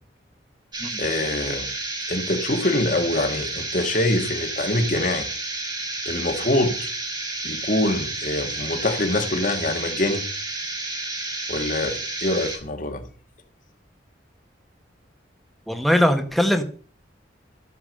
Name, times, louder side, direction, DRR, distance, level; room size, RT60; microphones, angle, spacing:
sound 1, 0.7-12.6, right 2 dB, 25° right, 2.5 m, -31 dB
voice 1, 1.0-1.7 2.1-5.3 6.1-6.9 7.4-10.2 11.5-13.0, left 1 dB, 45° left, 1.7 m, -24 dB
voice 2, 15.7-16.6, equal, ahead, 1.4 m, -20 dB
12.5 x 7.1 x 6.7 m
head